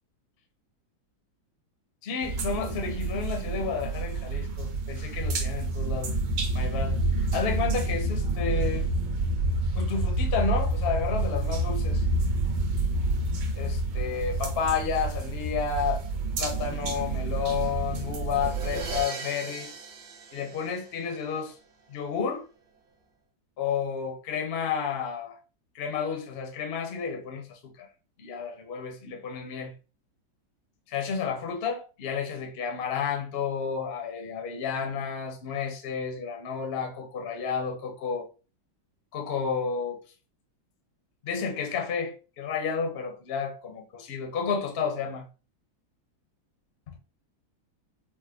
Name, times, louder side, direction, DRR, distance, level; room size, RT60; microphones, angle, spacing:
voice 1, 2.0-6.2 6.5-7.0 7.3-8.9 9.8-12.0 13.5-16.0 16.4-19.7 20.3-21.5 21.9-22.4 23.6-25.4 25.7-27.9 28.2-29.7 30.9-38.3 39.1-40.0 41.2-45.3 46.9-47.0, left 6 dB, 70° left, 0.5 m, -31 dB
sound 1, 2.2-19.0, right 2 dB, 90° right, 1.7 m, -28 dB
sound 2, 18.3-21.3, right 4 dB, 65° right, 1.1 m, -39 dB
5.1 x 2.1 x 2.5 m
omnidirectional pair, 2.2 m